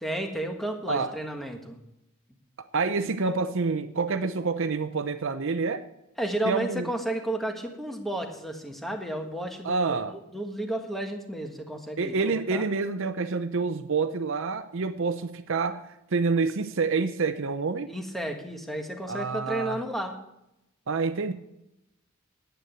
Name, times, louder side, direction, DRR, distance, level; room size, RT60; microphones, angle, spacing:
voice 1, 0.0-1.8 6.2-12.6 17.9-20.2, right 1 dB, ahead, 3 dB, 1.5 m, -32 dB
voice 2, 2.6-5.8 6.4-6.9 9.6-10.1 12.0-15.8 16.1-17.9 19.1-19.8 20.9-21.3, right 4 dB, 65° right, 11 dB, 0.7 m, -27 dB
9.6 x 9.0 x 7.9 m, 0.86 s
head